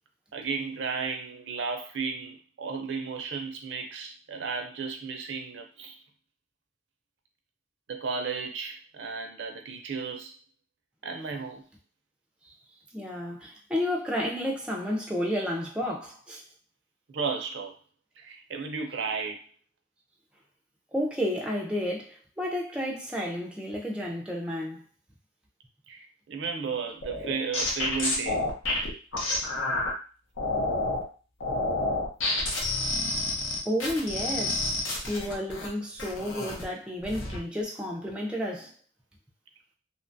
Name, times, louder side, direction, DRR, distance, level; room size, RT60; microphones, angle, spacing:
voice 1, 0.3-6.0 7.9-10.4 11.0-11.6 17.1-17.7 18.2-19.4 25.9-28.4, right 5 dB, 65° right, 0.4 m, -34 dB
voice 2, 12.9-16.4 20.9-24.8 33.7-38.7, equal, 5° right, 0.4 m, -31 dB
sound 1, 27.0-29.9 30.4-31.0 31.4-35.7 36.0-36.6 37.0-37.4, left 2 dB, 85° left, 0.8 m, -29 dB
2.8 x 2.2 x 2.5 m
head